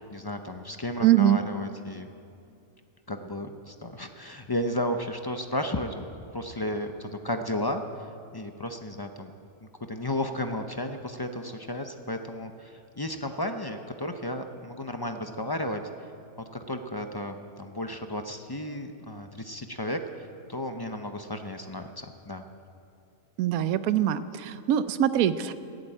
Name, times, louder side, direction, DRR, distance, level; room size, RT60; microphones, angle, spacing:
voice 1, 0.0-2.1 3.1-6.0 6.3-8.1 8.3-9.3 9.6-15.8 16.5-22.4, left 1 dB, 30° left, 6 dB, 0.4 m, -33 dB
voice 2, 1.0-1.4 23.4-25.5, right 11 dB, 85° right, 13 dB, 1.1 m, -23 dB
13.5 x 11.0 x 8.9 m, 2.5 s
omnidirectional pair, 1.5 m